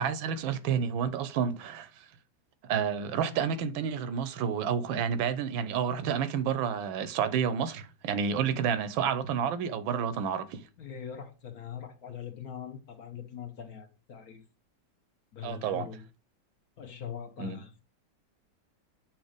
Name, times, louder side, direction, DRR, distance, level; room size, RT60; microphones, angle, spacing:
voice 1, 0.0-1.9 2.6-10.6 15.4-15.9 17.4-17.6, right 7 dB, 80° right, 1.5 m, -30 dB
voice 2, 10.8-14.4 15.3-16.0 16.8-17.8, left 8 dB, 55° left, 1.2 m, -42 dB
7.3 x 3.0 x 5.0 m
omnidirectional pair, 2.1 m